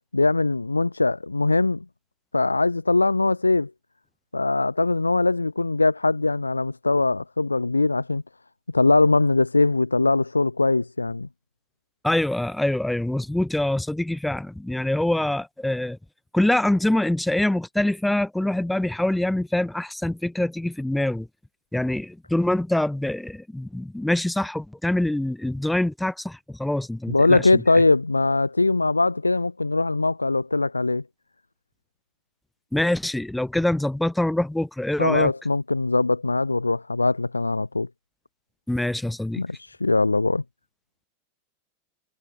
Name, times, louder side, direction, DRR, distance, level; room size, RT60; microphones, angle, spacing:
voice 1, 0.0-1.8 2.3-3.7 4.3-8.2 8.7-11.3 27.1-31.0 35.0-37.9 39.4-40.4, left 3 dB, 80° left, 1.1 m, -21 dB
voice 2, 12.0-16.0 16.3-21.3 21.7-27.6 32.7-35.3 38.7-39.4, left 1 dB, 5° left, 1.7 m, -25 dB
figure-of-eight pair, 90°, 0 cm